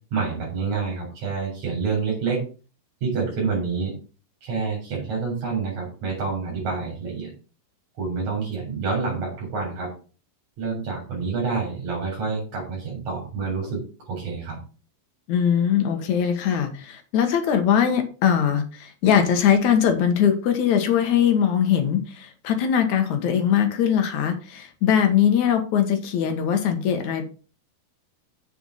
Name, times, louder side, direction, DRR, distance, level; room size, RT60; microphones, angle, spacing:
voice 1, 0.1-2.5 3.0-4.0 4.4-7.3 8.0-9.9 10.6-14.6, right 5 dB, 50° right, -2 dB, 4.9 m, -28 dB
voice 2, 15.3-27.3, left 8 dB, 60° left, 6 dB, 2.4 m, -21 dB
7.6 x 6.9 x 5.7 m, 0.36 s
omnidirectional pair, 4.4 m